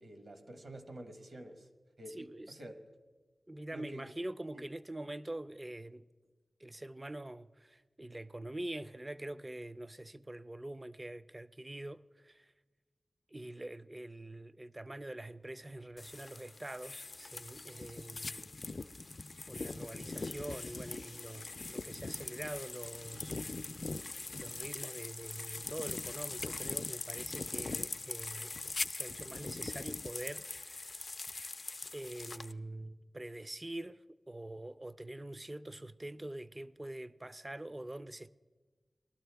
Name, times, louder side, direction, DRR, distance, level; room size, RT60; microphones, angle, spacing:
voice 1, 0.0-1.7 2.0-2.8 3.7-4.1 4.5-4.6, right 1 dB, 65° right, 1.2 m, -49 dB
voice 2, 2.1-2.5 3.5-6.0 6.6-12.5 13.3-18.5 19.5-23.4 24.3-31.0 31.9-38.3, right 1 dB, 25° right, 0.3 m, -45 dB
sound 1, 15.2-28.3, right 2 dB, 90° right, 2.8 m, -72 dB
sound 2, 16.0-32.5, left 3 dB, 50° left, 0.3 m, -42 dB
19.5 x 12.0 x 3.4 m
wide cardioid pair, 80°, 0 cm